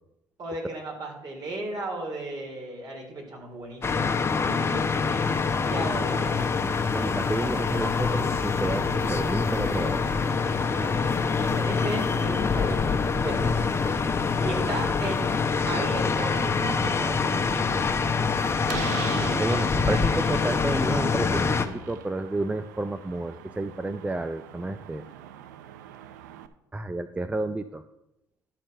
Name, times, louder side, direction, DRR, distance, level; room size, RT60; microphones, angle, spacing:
voice 1, 0.4-6.5 10.8-12.9 13.2-13.5 14.4-15.2 15.6-17.8, right 2 dB, 50° right, 1 dB, 3.4 m, -35 dB
sound 1, 3.8-21.7, left 5 dB, 25° left, 0.9 m, -25 dB
sound 2, 4.9-16.9, equal, 35° right, 1.6 m, -41 dB
voice 2, 6.9-10.1 19.4-25.0 26.7-27.8, right 2 dB, 15° right, 11 dB, 0.5 m, -31 dB
Slam, 17.9-26.5, right 10 dB, 90° right, 0.5 m, -41 dB
11.5 x 4.5 x 6.4 m, 0.89 s
hypercardioid pair, 65°, 9 cm